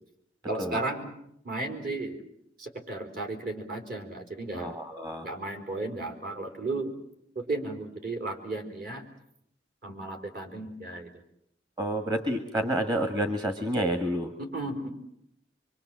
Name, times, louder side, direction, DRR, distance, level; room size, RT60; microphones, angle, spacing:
voice 1, 0.5-1.1 1.4-2.2 2.6-4.7 5.2-6.9 7.3-9.0 9.8-11.1 14.4-14.9, right 2 dB, 50° right, 4 dB, 4.1 m, -34 dB
voice 2, 4.5-5.3 11.8-14.3, right 1 dB, 25° right, 6 dB, 1.7 m, -29 dB
25.5 x 24.0 x 7.5 m, 0.75 s
head